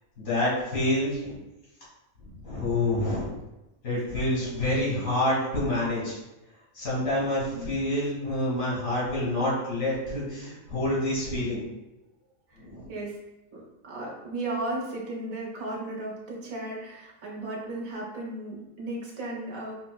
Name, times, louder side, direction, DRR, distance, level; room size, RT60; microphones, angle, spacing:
voice 1, 0.2-1.3 2.4-3.3 3.8-6.2 6.7-11.6 12.6-12.9, left 1 dB, 80° left, -7 dB, 2.1 m, -27 dB
voice 2, 12.9-13.2 13.5-19.7, right 2 dB, 85° right, -3 dB, 1.3 m, -35 dB
5.4 x 2.0 x 2.3 m, 1.0 s
omnidirectional pair, 1.4 m